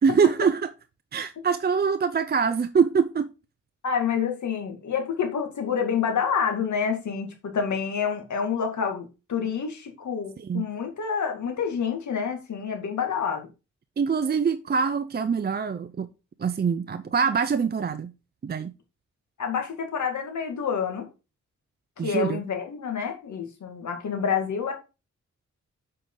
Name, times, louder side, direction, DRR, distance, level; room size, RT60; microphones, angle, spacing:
voice 1, 0.0-0.7 1.1-3.3 10.4-10.6 14.0-16.1 16.4-18.1 18.4-18.7 22.0-22.4, right 6 dB, 35° right, 0.5 m, -24 dB
voice 2, 3.8-13.5 19.4-21.1 22.0-24.7, left 6 dB, 75° left, 2.2 m, -28 dB
8.6 x 5.1 x 3.9 m
wide cardioid pair, 110°, 29 cm